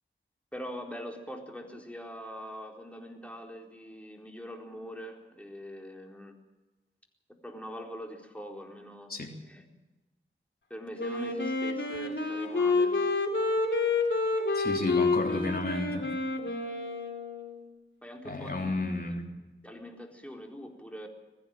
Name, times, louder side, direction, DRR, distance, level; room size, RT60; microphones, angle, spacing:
voice 1, 0.5-6.4 7.4-9.7 10.7-13.0 18.0-19.2 19.6-21.1, equal, 5° left, 1 dB, 4.3 m, -43 dB
Wind instrument woodwind instrument, 11.0-17.6, left 3 dB, 70° left, 3.6 m, -29 dB
voice 2, 14.5-16.0 18.3-19.3, left 2 dB, 50° left, 1 dB, 3.5 m, -32 dB
21.0 x 15.0 x 8.9 m, 1.1 s
wide cardioid pair, 50°, 20 cm